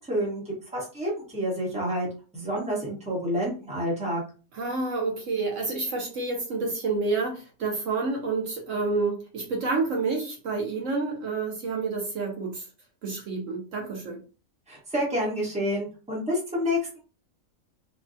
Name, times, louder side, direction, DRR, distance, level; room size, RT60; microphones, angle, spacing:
voice 1, 0.1-2.1 2.3-4.2 14.7-17.0, equal, 5° right, -4 dB, 1.0 m, -29 dB
voice 2, 4.5-12.7 13.0-14.2, right 3 dB, 65° right, 0 dB, 1.1 m, -29 dB
3.2 x 2.3 x 2.6 m, 0.35 s
omnidirectional pair, 1.5 m